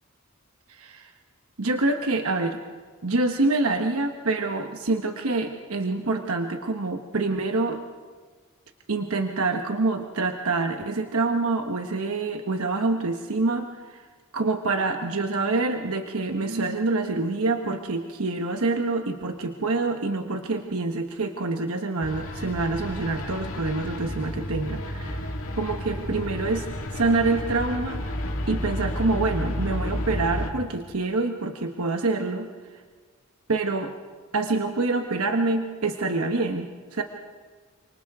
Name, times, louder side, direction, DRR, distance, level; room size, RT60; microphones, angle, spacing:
voice 1, 0.8-1.1 1.6-2.6 3.0-7.8 8.9-14.0 14.3-25.2 25.6-26.7 26.9-28.2 28.5-32.5 33.5-33.9 34.3-37.0, right 3 dB, 80° right, 5 dB, 1.1 m, -26 dB
sound 1, 22.0-30.5, left 1 dB, 70° left, 2.0 m, -31 dB
28.5 x 26.0 x 3.6 m, 1.5 s
head